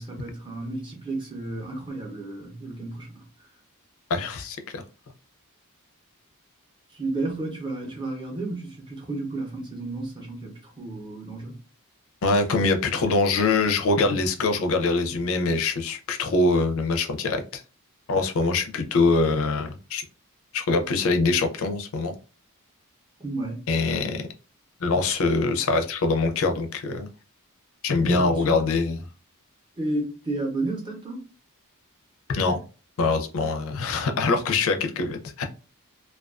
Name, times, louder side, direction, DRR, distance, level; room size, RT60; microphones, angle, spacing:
voice 1, 0.0-3.3 6.9-11.6 23.2-23.6 28.0-28.6 29.8-31.3, right 2 dB, 20° right, 0.7 m, -32 dB
voice 2, 4.1-4.8 12.2-17.6 18.1-20.0 20.5-22.2 23.7-24.3 24.8-27.1 27.8-29.0 32.3-32.6 33.0-35.4, left 3 dB, 65° left, 0.4 m, -24 dB
2.3 x 2.3 x 2.3 m
head